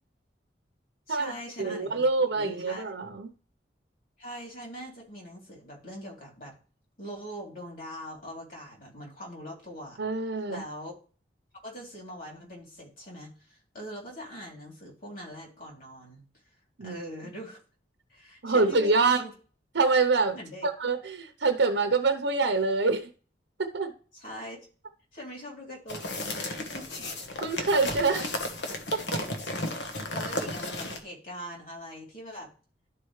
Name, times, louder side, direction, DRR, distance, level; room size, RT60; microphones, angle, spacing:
voice 1, 1.1-2.0 2.3-2.9 4.2-6.5 7.0-10.0 10.5-10.9 11.6-16.2 16.8-17.6 18.1-19.3 20.3-20.7 24.2-24.6 25.1-27.1 28.1-28.5 30.1-32.5, equal, 50° left, 3.3 m, -42 dB
voice 2, 1.6-3.3 10.0-10.6 16.8-17.0 18.4-19.2 19.7-20.4 20.6-23.1 23.6-23.9 27.4-28.3 28.9-29.2, right 3 dB, 85° right, 0.8 m, -25 dB
sound 1, 25.9-31.0, left 2 dB, 75° left, 1.2 m, -34 dB
12.0 x 4.6 x 3.2 m
head